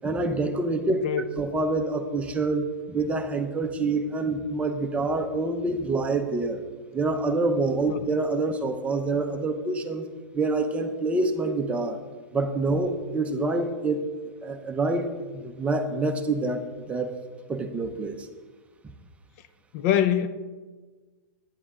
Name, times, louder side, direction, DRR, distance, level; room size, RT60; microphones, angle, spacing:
voice 1, 0.0-1.0 1.4-6.6 6.9-10.1 10.3-12.0 12.3-15.1 15.3-17.1 17.5-18.3, right 3 dB, 10° right, 0.7 m, -26 dB
voice 2, 19.7-20.3, left 10 dB, 45° left, 0.5 m, -23 dB
9.7 x 9.7 x 3.7 m
hypercardioid pair, 145°, 10 cm